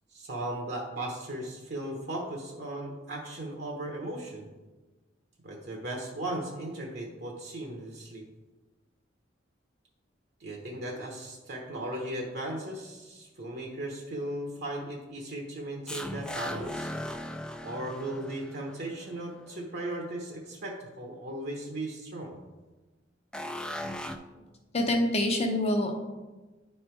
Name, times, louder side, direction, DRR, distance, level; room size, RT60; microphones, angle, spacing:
voice 1, 0.1-4.5 5.4-8.2 10.4-16.9 17.6-22.4, right 1 dB, 60° right, 0 dB, 1.0 m, -37 dB
sound 1, 15.9-19.2 23.3-24.2, left 1 dB, 5° left, 0.4 m, -38 dB
voice 2, 24.7-25.9, left 1 dB, 35° left, 3 dB, 0.9 m, -26 dB
9.9 x 3.3 x 4.5 m, 1.2 s
head